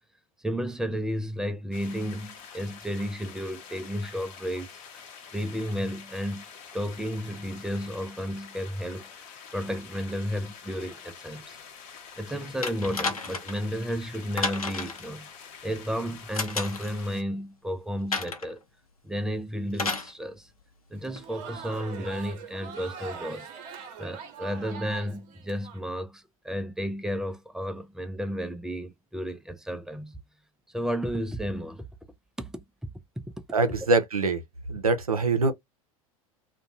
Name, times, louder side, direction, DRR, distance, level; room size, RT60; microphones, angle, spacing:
voice 1, 0.4-5.0 5.3-6.4 6.7-11.6 12.2-15.3 15.6-18.6 19.0-20.5 20.9-23.5 24.0-30.2 30.7-31.9 32.4-32.6 33.2-33.3 33.8-33.9, equal, 5° right, 0.3 m, -33 dB
sound 1, 1.7-17.2, left 6 dB, 40° left, 0.8 m, -47 dB
sound 2, 12.6-13.6 14.4-15.1 16.3-16.9 18.1-18.5 19.7-20.1 21.2-21.3, left 4 dB, 85° left, 0.6 m, -31 dB
Crowd, 21.0-25.8, right 6 dB, 40° right, 0.8 m, -42 dB
voice 2, 33.5-34.4 34.7-35.5, right 3 dB, 85° right, 0.5 m, -24 dB
2.5 x 2.2 x 2.5 m
figure-of-eight pair, 80°, 18 cm